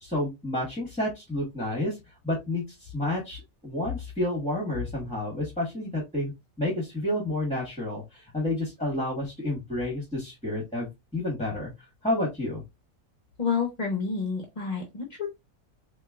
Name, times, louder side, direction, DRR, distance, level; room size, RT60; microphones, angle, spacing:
voice 1, 0.0-2.0 2.2-6.3 6.6-10.9 11.1-11.7 12.0-12.6, left 1 dB, 5° left, -3 dB, 1.5 m, -30 dB
voice 2, 13.4-15.3, left 5 dB, 35° left, 3 dB, 0.8 m, -29 dB
4.3 x 3.0 x 2.4 m, 0.21 s
omnidirectional pair, 1.4 m